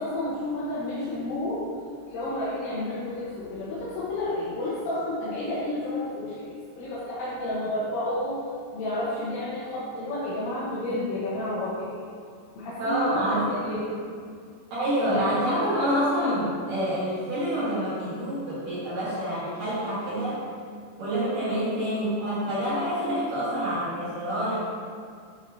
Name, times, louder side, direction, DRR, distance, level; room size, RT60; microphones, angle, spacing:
voice 1, 0.0-1.7 2.1-8.4 8.7-12.0 12.6-13.9 14.2-14.3 15.0-15.4 21.5-21.7, left 1 dB, 80° left, -9 dB, 3.4 m, -31 dB
voice 2, 12.8-13.8 14.7-20.4 21.0-24.5, equal, 65° right, -11 dB, 2.3 m, -27 dB
8.0 x 6.2 x 2.7 m, 2.1 s
omnidirectional pair, 5.5 m